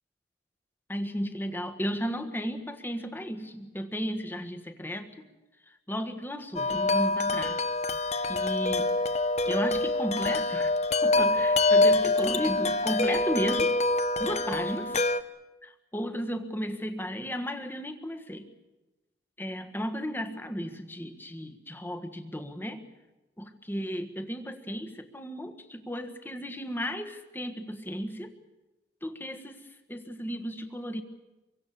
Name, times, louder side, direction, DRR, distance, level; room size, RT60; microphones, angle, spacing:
voice 1, 0.9-5.1 5.9-7.6 8.3-9.0 9.5-10.7 11.0-13.7 14.2-15.0 15.6-18.5 19.4-22.8 23.4-28.3 29.0-31.0, equal, 10° left, 6 dB, 1.6 m, -34 dB
Wind chime, 6.6-15.2, left 2 dB, 35° left, 0.8 m, -25 dB
26.0 x 23.0 x 7.0 m, 1.1 s
head